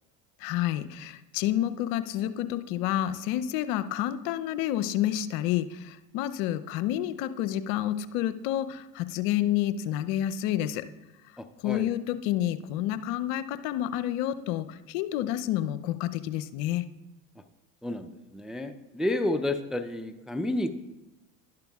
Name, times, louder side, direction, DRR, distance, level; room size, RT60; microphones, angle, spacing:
voice 1, 0.4-10.9 11.6-16.8, left 12 dB, 65° left, 12 dB, 0.7 m, -29 dB
voice 2, 17.8-20.7, left 1 dB, ahead, 8 dB, 0.4 m, -30 dB
12.0 x 11.5 x 2.3 m, 0.99 s
hypercardioid pair, 80°, 43 cm